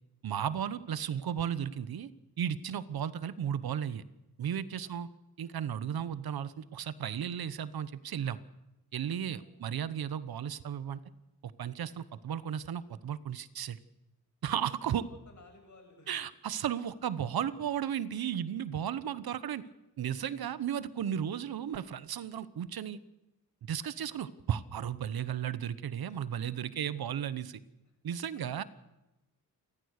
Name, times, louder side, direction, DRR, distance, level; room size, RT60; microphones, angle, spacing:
voice 1, 0.2-2.1 2.4-4.0 4.4-5.1 5.4-8.4 8.9-11.0 11.4-13.8 14.4-15.1 16.1-19.6 20.0-23.0 23.7-27.6 28.0-28.6, right 9 dB, 70° right, 15 dB, 1.1 m, -34 dB
voice 2, 15.1-16.2 25.2-25.5 27.8-28.0, left 3 dB, 50° left, 3 dB, 7.9 m, -58 dB
29.5 x 14.5 x 6.6 m, 0.99 s
cardioid pair, 95°, 38 cm